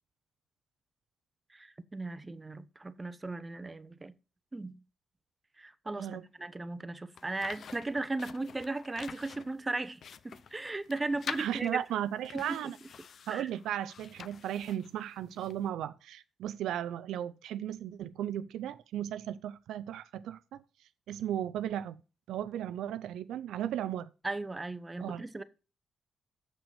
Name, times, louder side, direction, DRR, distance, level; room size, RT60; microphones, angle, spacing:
voice 1, 1.5-4.1 4.5-4.8 5.6-11.8 12.3-12.7 13.3-13.5 24.2-25.4, right 2 dB, 20° right, 0.8 m, -37 dB
sound 1, 7.1-15.7, left 7 dB, 60° left, 0.6 m, -47 dB
voice 2, 11.4-12.8 13.3-20.6 21.1-22.0 22.3-24.1 25.0-25.2, right 11 dB, 85° right, 0.4 m, -35 dB
6.7 x 6.0 x 7.0 m
cardioid pair, 75°, 0 cm